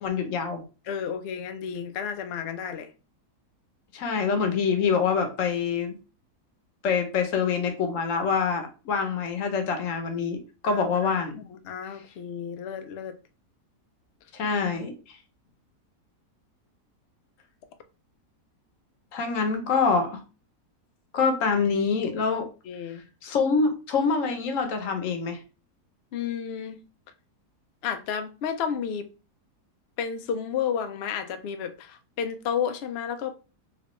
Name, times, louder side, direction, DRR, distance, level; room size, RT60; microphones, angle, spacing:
voice 1, 0.0-0.6 3.9-6.0 6.8-11.4 14.3-14.9 19.1-20.2 21.1-22.5 23.2-25.4, left 5 dB, 60° left, 1.0 m, -25 dB
voice 2, 0.9-2.9 10.6-10.9 11.5-13.2 22.7-23.0 26.1-26.8 27.8-29.1 30.0-33.3, left 7 dB, 80° left, 0.5 m, -31 dB
3.2 x 3.0 x 3.0 m
omnidirectional pair, 1.7 m